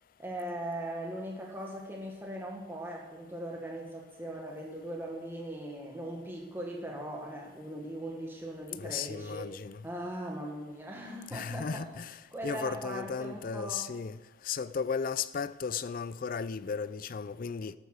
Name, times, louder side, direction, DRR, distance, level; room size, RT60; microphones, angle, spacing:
voice 1, 0.2-9.5 9.8-11.9 12.3-13.9, right 1 dB, 10° right, 1.5 m, -39 dB
voice 2, 8.8-9.8 11.3-12.2 12.4-14.2 14.4-17.7, left 6 dB, 45° left, 0.4 m, -35 dB
12.5 x 8.0 x 6.5 m
head